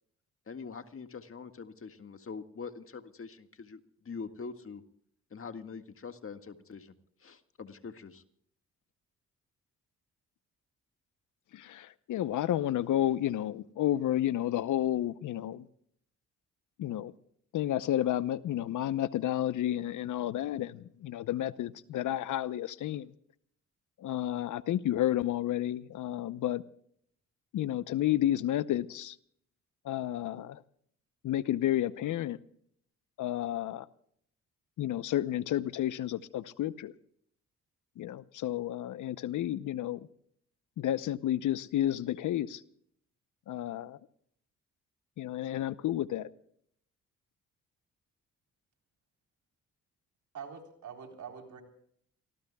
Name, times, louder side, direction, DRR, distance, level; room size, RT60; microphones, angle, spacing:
voice 1, 0.5-4.8 5.3-6.9 7.2-8.2, left 5 dB, 45° left, 1.9 m, -44 dB
voice 2, 11.5-15.7 16.8-17.1 17.5-23.1 24.0-26.6 27.5-29.2 29.8-30.6 31.2-32.4 33.2-33.9 34.8-36.9 38.0-40.1 40.8-42.6 43.5-44.0 45.2-46.3, left 12 dB, 70° left, 0.8 m, -31 dB
voice 3, 50.3-51.6, right 7 dB, 65° right, 4.0 m, -44 dB
29.0 x 18.5 x 2.3 m
supercardioid pair, 60°, 31 cm